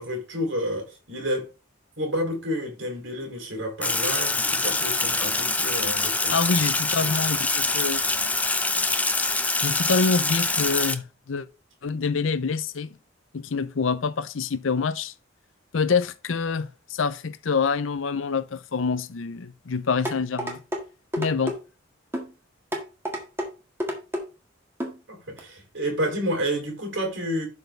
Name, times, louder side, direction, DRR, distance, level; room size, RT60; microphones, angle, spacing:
voice 1, 0.0-1.5 2.0-6.3 7.0-7.1 25.1-27.5, equal, 70° right, 3.4 m, -30 dB
Sink (filling or washing), 3.8-10.9, left 3 dB, 10° left, 0.5 m, -25 dB
voice 2, 6.3-8.0 9.6-11.5 11.8-12.9 13.3-15.1 15.7-20.6 21.2-21.6, left 5 dB, 85° left, 0.6 m, -26 dB
sound 1, 20.1-20.8 21.1-21.6 22.1-22.3 22.7-23.5 23.8-24.2 24.8-25.0 25.4-25.5, equal, 15° right, 1.7 m, -29 dB
11.5 x 4.4 x 3.4 m
head